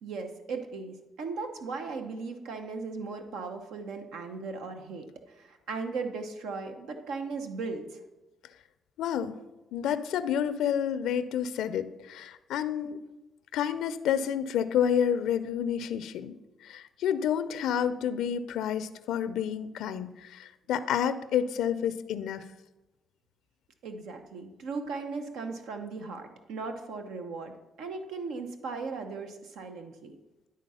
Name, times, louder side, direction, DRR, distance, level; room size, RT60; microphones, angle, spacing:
voice 1, 0.0-8.0 23.8-27.5 27.8-30.2, right 4 dB, 85° right, 5 dB, 0.8 m, -37 dB
voice 2, 9.0-9.3 9.7-13.0 13.5-16.4 16.6-22.4, left 9 dB, 85° left, 12 dB, 0.4 m, -29 dB
10.5 x 3.8 x 5.5 m, 1.0 s
cardioid pair, 90°, 0 cm